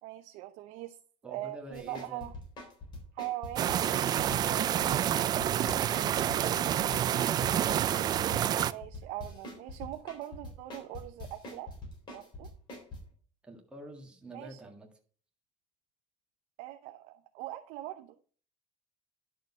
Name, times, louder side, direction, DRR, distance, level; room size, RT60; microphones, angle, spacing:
voice 1, 0.0-1.0 1.2-2.3 3.1-4.8 8.6-11.7 12.1-12.5 14.3-14.6 16.6-18.1, right 15 dB, 75° right, 6 dB, 0.7 m, -41 dB
voice 2, 1.2-2.3 13.4-14.9, right 2 dB, 5° right, 1 dB, 1.7 m, -48 dB
sound 1, 1.7-13.0, left 2 dB, 35° left, 3.8 m, -43 dB
sound 2, 3.6-8.7, right 11 dB, 30° right, 0.4 m, -28 dB
10.5 x 6.5 x 5.4 m, 0.43 s
cardioid pair, 170°, 13 cm